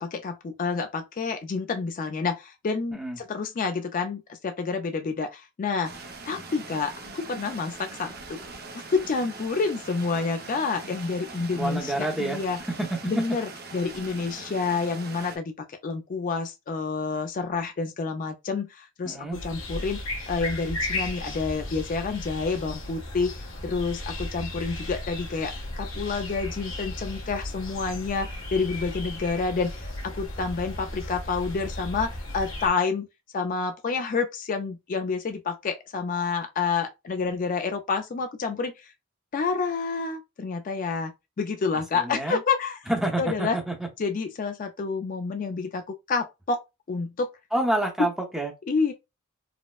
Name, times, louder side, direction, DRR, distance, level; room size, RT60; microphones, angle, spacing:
voice 1, 0.0-5.9 6.3-8.4 8.7-12.6 13.1-15.5 15.8-33.1 33.3-38.7 39.3-42.8 43.2-43.6 44.0-46.6 46.9-47.3 48.7-48.9, left 4 dB, 40° left, 0.3 m, -29 dB
sound 1, 5.8-15.4, right 3 dB, 45° right, 0.6 m, -42 dB
voice 2, 11.5-12.4 12.8-12.9 19.0-19.4 41.9-42.4 42.9-43.9 47.5-48.5, right 1 dB, ahead, 0.7 m, -28 dB
sound 2, 19.3-32.7, left 1 dB, 60° left, 1.5 m, -35 dB
4.1 x 2.1 x 2.3 m
head